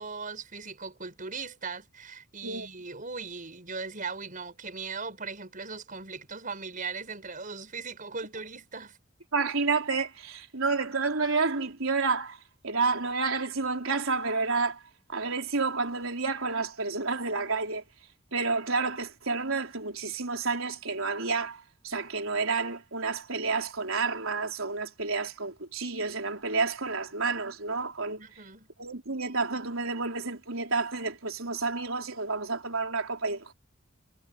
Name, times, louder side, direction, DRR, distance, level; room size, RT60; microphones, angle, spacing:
voice 1, 0.0-9.0 28.2-28.7, right 4 dB, 40° right, 5.9 m, -39 dB
voice 2, 9.3-12.4 12.6-14.8 15.1-17.8 18.3-28.2 28.8-33.5, right 4 dB, 80° right, 4.1 m, -30 dB
head